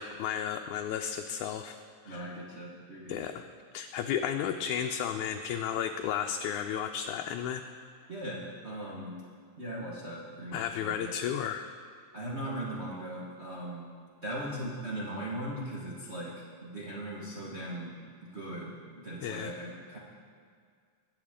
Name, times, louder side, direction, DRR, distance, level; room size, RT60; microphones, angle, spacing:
voice 1, 0.0-1.8 2.1-2.4 3.1-3.4 3.7-7.6 10.5-11.7 19.2-19.5, left 9 dB, 80° left, 4 dB, 1.9 m, -33 dB
voice 2, 2.0-3.3 8.1-9.2 9.6-11.1 12.1-13.9 14.2-18.0 18.2-18.8 19.0-20.0, right 1 dB, 75° right, -6 dB, 0.6 m, -39 dB
22.0 x 8.2 x 3.7 m, 2.1 s
omnidirectional pair, 3.6 m